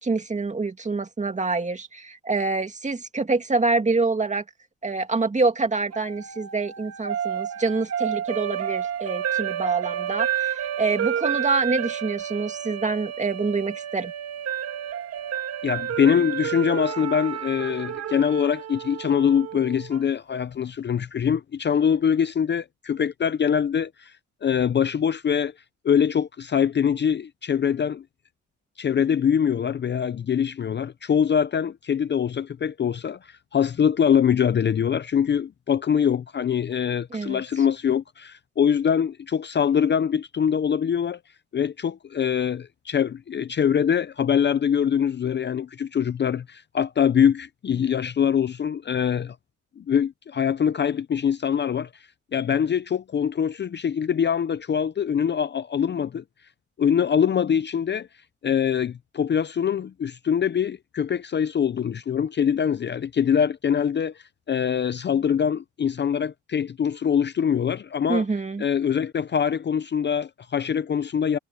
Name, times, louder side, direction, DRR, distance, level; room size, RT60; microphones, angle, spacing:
voice 1, 0.0-4.4 4.8-14.1 37.1-37.4 68.1-68.6, right 3 dB, 25° right, 2.2 m, -26 dB
sound 1, 5.9-20.0, right 9 dB, 55° right, 1.9 m, -30 dB
voice 2, 15.6-24.1 24.4-25.5 25.8-28.0 28.8-41.2 41.5-49.4 49.8-51.9 52.3-56.2 56.8-58.1 58.4-64.1 64.5-68.2 68.6-71.4, left 8 dB, 35° left, 0.6 m, -23 dB
cardioid pair, 90°, 30 cm